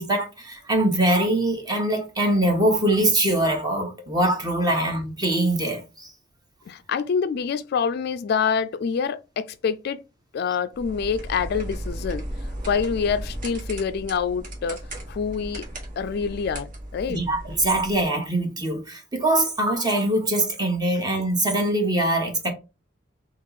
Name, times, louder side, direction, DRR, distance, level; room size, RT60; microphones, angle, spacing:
voice 1, 0.0-6.1 17.1-22.5, right 1 dB, 20° right, 1.1 m, -23 dB
voice 2, 6.7-10.0 10.3-12.3 12.7-14.8 15.1-15.6 16.0-17.2, left 6 dB, 55° left, 0.3 m, -26 dB
sound 1, 10.7-18.1, right 1 dB, 45° right, 1.4 m, -36 dB
3.7 x 2.9 x 4.0 m
head